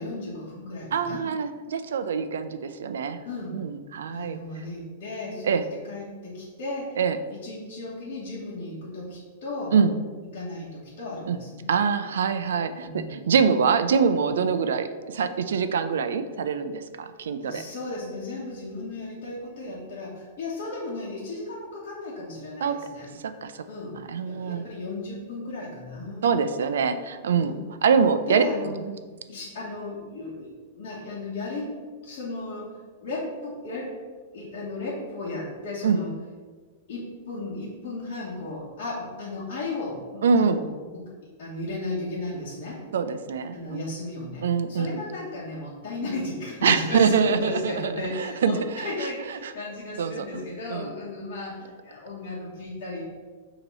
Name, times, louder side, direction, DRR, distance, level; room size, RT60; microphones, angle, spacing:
voice 1, 0.0-1.2 3.2-3.6 4.1-7.0 7.3-9.7 10.3-11.7 12.8-13.2 17.4-23.1 23.7-24.0 24.2-26.4 27.3-27.6 28.3-28.8 29.3-31.7 32.0-34.0 34.3-36.1 36.9-41.1 41.4-42.8 43.5-53.0, left 2 dB, 40° left, -9 dB, 1.4 m, -35 dB
voice 2, 0.9-3.2 3.5-4.4 5.4-5.6 7.0-7.2 9.7-10.0 11.3-11.4 11.7-17.6 22.6-22.8 23.2-23.6 24.1-24.6 26.2-29.0 35.8-36.0 40.2-40.6 42.9-43.8 44.4-45.0 46.6-49.5 50.0-50.4 50.7-50.9, right 6 dB, 90° right, 10 dB, 0.5 m, -24 dB
6.9 x 3.0 x 5.4 m, 1.4 s
supercardioid pair, 180°, 0 cm